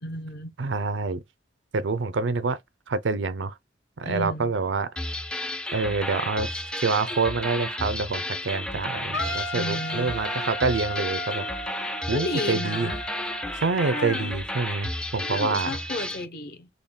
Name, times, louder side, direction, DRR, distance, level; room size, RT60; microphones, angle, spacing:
voice 1, 0.0-0.5 4.0-4.5 9.5-10.1 12.1-13.0 13.8-14.3 15.2-16.7, left 2 dB, 60° left, 0.9 m, -33 dB
voice 2, 0.6-1.2 1.7-2.6 2.9-3.5 4.0-4.9 5.7-6.5 6.8-11.5 12.1-12.9 13.6-15.8, right 4 dB, 85° right, 0.5 m, -26 dB
sound 1, 5.0-16.2, left 1 dB, 5° left, 0.3 m, -32 dB
Wind instrument woodwind instrument, 9.1-13.6, left 1 dB, 85° left, 1.8 m, -35 dB
3.9 x 2.2 x 3.5 m
head